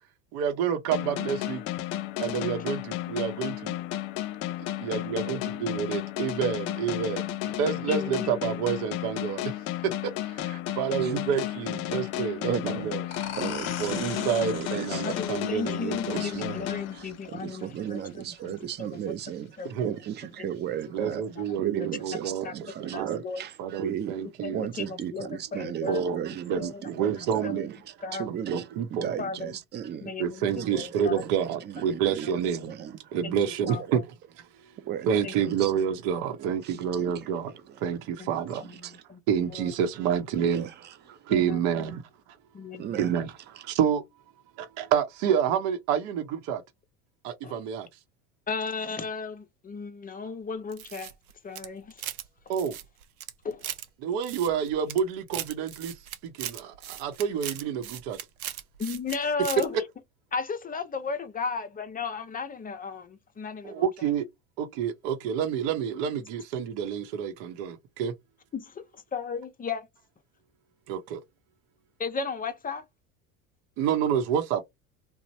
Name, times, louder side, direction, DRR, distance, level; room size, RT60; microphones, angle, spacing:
voice 1, 0.3-1.6 2.2-3.8 4.8-9.5 9.8-13.0 13.8-16.2 19.6-20.0 20.9-22.5 22.8-23.2 23.6-24.7 25.9-26.2 26.5-27.6 28.5-29.1 30.2-32.7 33.1-34.0 35.1-37.5 37.8-38.6 39.3-40.7 41.1-42.0 43.0-44.0 44.6-46.6 47.2-47.9 52.5-52.8 54.0-56.0 56.2-58.2 63.6-64.3 64.6-68.1 70.9-71.2 73.8-74.6, right 8 dB, 55° right, 0.7 m, -28 dB
sound 1, 0.9-17.5, left 14 dB, 65° left, 0.6 m, -33 dB
voice 2, 7.9-8.4 15.0-19.1 19.6-19.7 20.4-20.5 22.4-22.5 22.9-23.4 24.4-26.2 26.6-26.8 27.4-27.7 28.0-28.3 29.2-29.6 30.0-31.1 33.2-33.3 33.7-33.8 35.2-35.5 38.2-38.3 38.6-39.2 39.5-39.7 41.3-41.6 42.5-42.9 47.4-47.6 48.5-51.1 51.4-52.0 53.4-53.7 58.8-59.8 60.3-63.9 68.5-68.8 69.1-69.9 72.0-72.8, left 4 dB, 20° left, 0.6 m, -35 dB
voice 3, 11.0-11.4 12.4-15.1 16.1-19.6 19.8-21.2 21.6-24.2 24.5-30.1 30.5-33.0 33.7-34.0 34.8-35.7 36.4-37.3 37.7-37.8 38.5-39.0 40.4-40.9 42.7-43.2 43.5-43.6, right 10 dB, 25° right, 0.4 m, -36 dB
sound 2, 13.1-18.5, left 8 dB, 35° left, 0.9 m, -41 dB
sound 3, 50.7-52.3 52.5-53.9 54.2-55.0 55.3-59.2 59.4-59.7, right 11 dB, 90° right, 0.6 m, -38 dB
2.9 x 2.0 x 2.6 m
hypercardioid pair, 80°, 42 cm